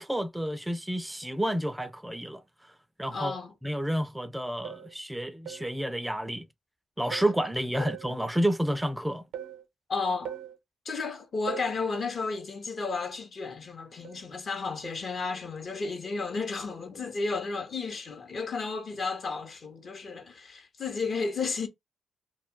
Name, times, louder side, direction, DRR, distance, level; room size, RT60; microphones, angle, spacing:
voice 1, 0.0-2.4 3.0-3.4 3.6-6.5 7.0-9.2, right 1 dB, 10° right, 0.4 m, -30 dB
voice 2, 3.1-3.5 7.8-7.9 9.9-10.3 10.8-21.7, left 4 dB, 55° left, 0.8 m, -33 dB
sound 1, 4.6-5.0 5.5-5.8 7.1-7.4 7.9-8.2 9.3-9.7 10.3-10.6 11.5-11.8 14.0-14.3 14.8-15.0, right 10 dB, 85° right, 0.5 m, -40 dB
2.3 x 2.1 x 3.6 m
supercardioid pair, 45°, 0 cm